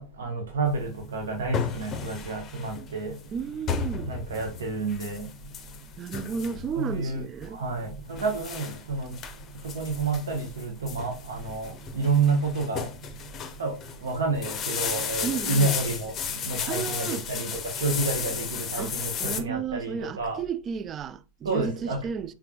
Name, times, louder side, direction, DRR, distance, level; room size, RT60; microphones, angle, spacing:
voice 1, 0.0-3.1 4.0-5.3 6.7-7.2 7.5-9.1 9.6-12.9 13.6-20.4 21.4-22.0, right 3 dB, 65° right, 1.0 m, -29 dB
sound 1, 0.7-19.4, left 6 dB, 30° left, 0.6 m, -34 dB
voice 2, 3.3-4.1 6.0-7.6 15.2-15.8 16.7-17.3 18.8-22.3, right 7 dB, 25° right, 0.3 m, -33 dB
4.6 x 3.7 x 2.2 m
figure-of-eight pair, 90°, 0 cm